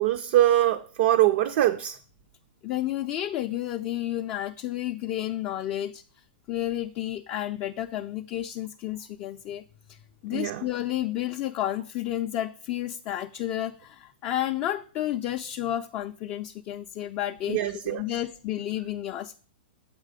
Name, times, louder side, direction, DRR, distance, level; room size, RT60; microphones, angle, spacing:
voice 1, 0.0-2.0 10.3-10.6 17.5-18.0, right 13 dB, 50° right, 0.4 m, -23 dB
voice 2, 2.6-6.0 6.5-9.6 9.9-19.3, left 13 dB, 30° left, 0.3 m, -31 dB
7.5 x 4.8 x 4.9 m
hypercardioid pair, 140°, 6 cm